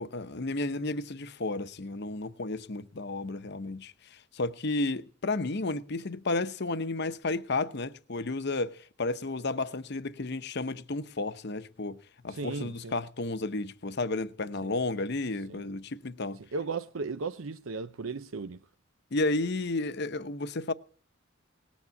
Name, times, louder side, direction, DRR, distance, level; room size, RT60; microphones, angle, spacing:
voice 1, 0.0-12.0 12.2-16.4 19.1-20.7, left 2 dB, 55° left, 0.9 m, -32 dB
voice 2, 12.3-12.9 14.6-14.8 15.5-15.6 16.5-18.6, right 4 dB, 85° right, 0.7 m, -36 dB
19.0 x 7.3 x 8.2 m
head